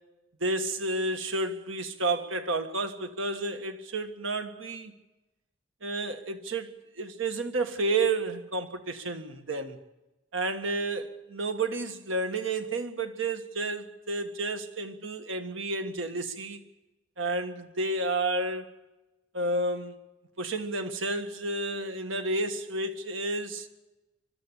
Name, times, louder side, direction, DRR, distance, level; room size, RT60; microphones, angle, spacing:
voice 1, 0.4-4.9 5.8-6.7 7.0-9.8 10.3-16.6 17.2-18.7 19.3-19.9 20.4-23.7, right 2 dB, 80° right, 1.7 m, -31 dB
23.5 x 13.0 x 10.0 m
head